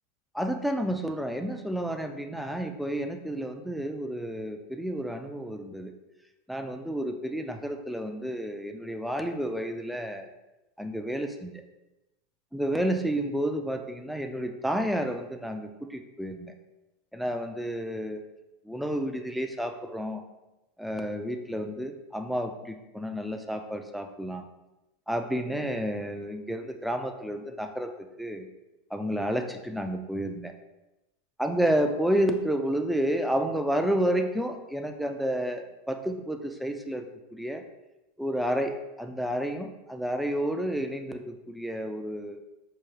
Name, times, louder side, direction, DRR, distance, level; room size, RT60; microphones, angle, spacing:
voice 1, 0.3-5.9 6.5-10.3 10.8-11.6 12.5-16.5 17.1-18.2 18.6-20.2 20.8-24.5 25.1-27.9 28.2-28.5 28.9-30.5 31.4-37.1 37.3-37.6 38.2-42.4, equal, ahead, 4 dB, 0.3 m, -30 dB
4.6 x 2.2 x 3.2 m, 0.98 s
supercardioid pair, 115°, 0 cm